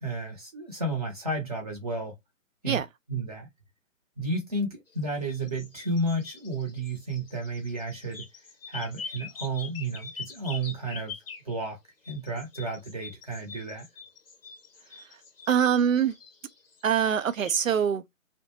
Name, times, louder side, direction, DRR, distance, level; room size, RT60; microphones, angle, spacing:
voice 1, 0.0-2.1 2.6-2.8 3.1-3.5 4.2-8.3 8.7-11.1 11.4-11.8 12.1-13.9, right 2 dB, 30° right, 0.8 m, -32 dB
sound 1, 4.9-11.7 12.0-17.5, left 5 dB, 45° left, 0.6 m, -44 dB
voice 2, 15.5-16.1 16.8-18.0, right 8 dB, 70° right, 0.6 m, -23 dB
2.5 x 2.1 x 2.9 m
figure-of-eight pair, 150°, 41 cm